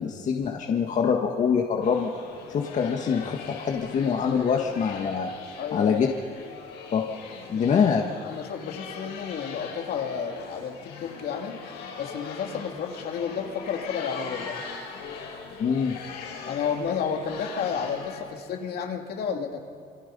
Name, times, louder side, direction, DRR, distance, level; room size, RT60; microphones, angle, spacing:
voice 1, 0.0-2.1 2.5-5.3 5.7-6.1 6.9-7.0 7.5-8.0 15.6-16.0, left 6 dB, 45° left, 2 dB, 1.7 m, -24 dB
sound 1, 1.8-18.2, left 5 dB, 85° left, 6.8 m, -41 dB
voice 2, 5.6-6.2 7.5-7.9 8.2-11.6 12.0-14.6 16.4-19.6, left 7 dB, 65° left, 3 dB, 3.0 m, -31 dB
27.5 x 25.0 x 5.5 m, 2.2 s
cardioid pair, 110°, 17 cm